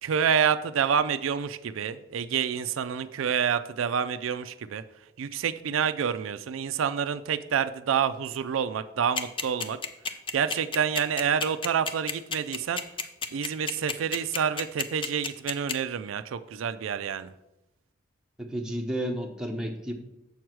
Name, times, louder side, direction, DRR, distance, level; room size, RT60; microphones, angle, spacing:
voice 1, 0.0-4.8 5.2-9.8 10.3-12.8 13.3-17.3, right 7 dB, 85° right, 11 dB, 0.4 m, -28 dB
sound 1, 9.2-15.7, left 5 dB, 25° left, 0.5 m, -30 dB
voice 2, 18.4-19.9, equal, 5° right, 1 dB, 0.9 m, -32 dB
7.1 x 4.7 x 6.1 m, 0.90 s
head